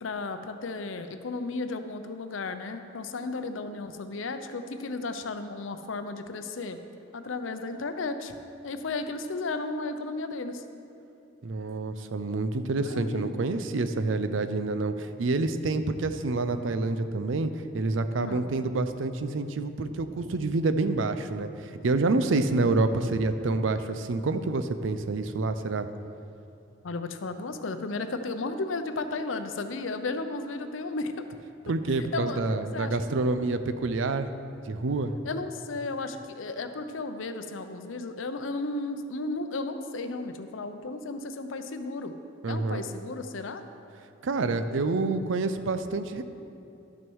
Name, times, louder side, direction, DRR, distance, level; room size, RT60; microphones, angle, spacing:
voice 1, 0.0-6.8 7.1-8.4 8.6-10.6 12.8-13.3 18.2-18.4 26.8-31.1 32.1-32.4 32.7-33.0 35.2-42.1 42.5-43.6, left 3 dB, 90° left, 8 dB, 0.6 m, -34 dB
voice 2, 11.4-25.9 31.7-34.3 34.7-35.1 42.4-42.8 44.2-46.2, right 3 dB, 80° right, 10 dB, 0.5 m, -28 dB
12.0 x 6.2 x 4.6 m, 2.7 s
head